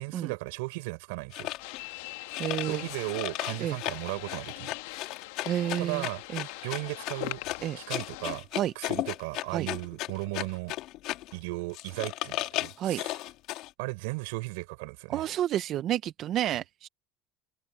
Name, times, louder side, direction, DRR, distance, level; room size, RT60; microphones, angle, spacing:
voice 1, 0.0-1.5 2.6-4.7 5.7-6.2 6.6-7.4 7.8-8.5 8.7-10.7 11.3-13.1 13.8-15.3, right 26 dB, 80° right, 4.3 m, -36 dB
sound 1, 1.3-1.8 2.3-11.4 11.7-13.7, left 16 dB, 55° left, 2.4 m, -35 dB
sound 2, 1.6-8.4, left 20 dB, 85° left, 1.4 m, -42 dB
voice 2, 2.4-2.8 3.6-3.8 5.4-6.1 6.3-6.5 7.6-7.8 8.5-8.7 9.5-9.7 12.8-13.0 15.1-16.9, right 12 dB, 40° right, 0.5 m, -30 dB
cardioid pair, 150°, 0 cm